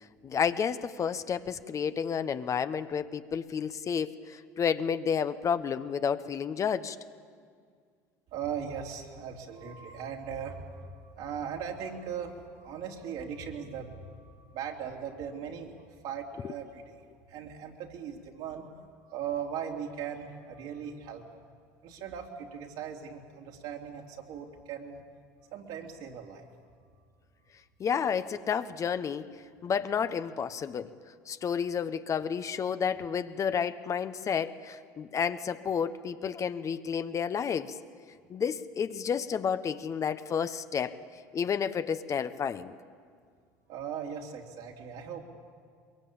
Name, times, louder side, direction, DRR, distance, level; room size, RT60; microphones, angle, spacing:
voice 1, 0.2-7.0 16.4-16.5 27.8-29.3 29.6-30.9 31.3-37.8 38.3-41.0 41.3-42.8, left 7 dB, 40° left, 11 dB, 1.1 m, -31 dB
voice 2, 8.3-15.8 16.0-17.0 17.3-18.7 19.0-21.3 21.8-25.0 25.5-26.5 43.7-45.2, right 7 dB, 65° right, 1 dB, 3.5 m, -39 dB
22.5 x 22.5 x 8.8 m, 2.1 s
hypercardioid pair, 75°, 9 cm